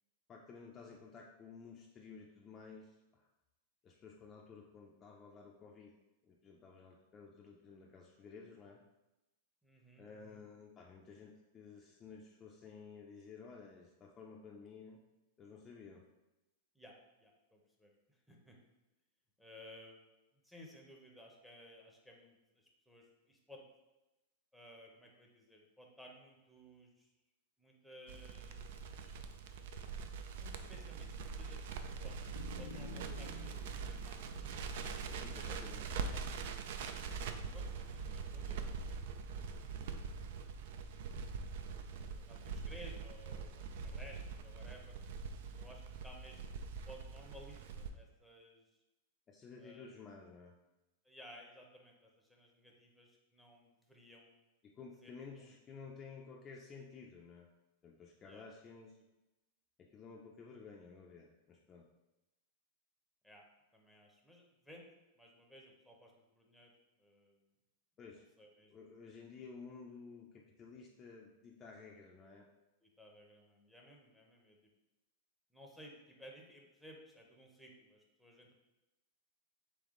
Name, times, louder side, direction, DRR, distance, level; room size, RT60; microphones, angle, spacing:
voice 1, 0.3-3.3 3.8-5.9 6.2-8.8 10.0-15.0 15.4-16.0 35.2-35.9 49.3-50.6 54.6-57.5 57.8-59.0 59.8-61.8 68.0-68.3 68.7-72.5, left 5 dB, 25° left, -1 dB, 0.4 m, -53 dB
voice 2, 9.6-10.4 16.7-18.6 19.4-20.0 20.4-23.7 24.5-27.1 27.6-29.1 30.4-34.3 35.0-35.4 36.1-36.2 37.0-39.4 41.5-43.5 43.8-45.0 45.6-48.6 49.6-49.9 51.0-54.3 55.0-55.1 55.4-55.5 58.2-58.4 63.2-63.4 63.7-64.9 65.2-66.7 67.0-67.4 68.4-69.0 72.8-74.7 75.5-78.5, equal, ahead, 0 dB, 0.7 m, -58 dB
Crackle, 28.1-47.9, right 5 dB, 65° right, 0.4 m, -43 dB
sound 1, 32.3-35.7 36.0-36.1, left 4 dB, 85° left, 0.5 m, -52 dB
3.5 x 3.3 x 3.7 m, 1.0 s
hypercardioid pair, 130°, 0 cm